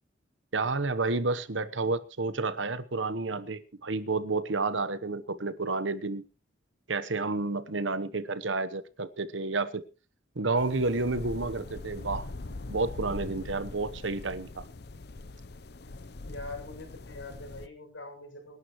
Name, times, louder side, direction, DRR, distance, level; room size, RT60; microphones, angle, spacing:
voice 1, 0.5-6.2 6.9-9.8 10.3-12.3 12.7-14.7, right 3 dB, 85° right, 1.1 m, -30 dB
sound 1, 10.6-17.7, left 2 dB, 60° left, 0.8 m, -42 dB
voice 2, 16.2-18.6, left 2 dB, 90° left, 7.1 m, -43 dB
25.5 x 11.0 x 3.1 m
head